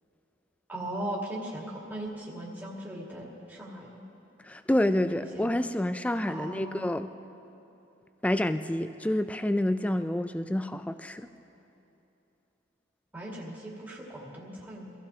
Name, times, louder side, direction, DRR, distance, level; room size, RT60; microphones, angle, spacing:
voice 1, 0.7-4.0 5.2-5.6 6.3-7.0 13.1-14.9, right 1 dB, 10° right, -6 dB, 2.0 m, -38 dB
voice 2, 4.4-7.1 8.2-11.3, left 1 dB, 5° left, 10 dB, 0.3 m, -28 dB
24.0 x 15.5 x 2.8 m, 2.9 s
head